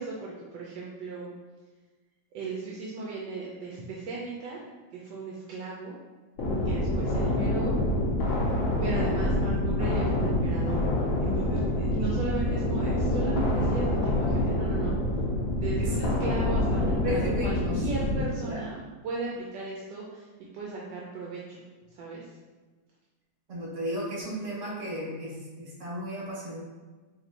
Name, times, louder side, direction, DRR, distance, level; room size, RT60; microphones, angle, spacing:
voice 1, 0.0-1.3 2.3-4.6 4.9-5.9 6.6-7.8 8.8-10.8 11.2-14.9 15.5-20.3 20.5-21.6 21.9-22.4, right 3 dB, 75° right, -4 dB, 1.3 m, -36 dB
sound 1, 6.4-18.2, left 1 dB, 65° left, 0.8 m, -26 dB
voice 2, 17.0-17.8 18.4-18.6 23.5-26.6, equal, 45° right, -7 dB, 1.5 m, -34 dB
4.1 x 3.2 x 2.5 m, 1.3 s
omnidirectional pair, 2.0 m